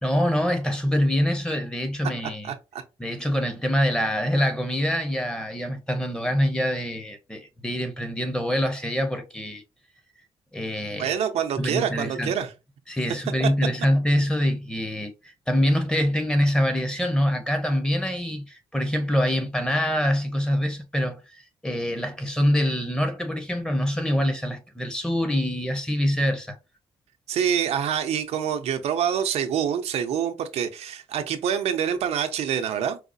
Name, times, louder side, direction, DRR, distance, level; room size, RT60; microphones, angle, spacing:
voice 1, 0.0-2.5 3.0-9.6 10.5-11.1 11.6-12.3 12.9-15.1 15.5-21.2 21.6-26.6, equal, 5° left, 0.8 m, -25 dB
voice 2, 2.4-2.8 10.9-12.5 13.4-13.5 27.3-33.0, right 8 dB, 85° right, 0.6 m, -26 dB
4.7 x 2.0 x 2.5 m
cardioid pair, 110°, 11 cm